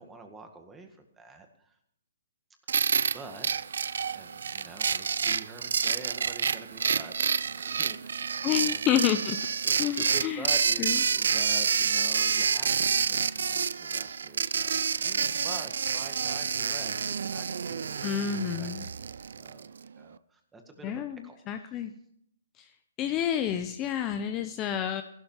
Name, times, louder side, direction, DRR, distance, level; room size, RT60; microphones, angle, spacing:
voice 1, 0.0-1.8 2.8-8.8 9.6-12.7 13.1-18.1 18.4-18.7 19.0-20.9 21.2-21.8, right 3 dB, 10° right, 5 dB, 1.8 m, -47 dB
sound 1, 2.7-19.7, right 6 dB, 75° right, 0.5 m, -28 dB
voice 2, 8.4-9.4 9.8-10.5 10.8-11.0 18.0-18.9 20.8-21.2 21.5-21.9 22.6-22.7 23.0-25.0, left 10 dB, 20° left, 8 dB, 0.7 m, -29 dB
15.5 x 12.0 x 5.7 m, 0.73 s
hypercardioid pair, 160°, 0 cm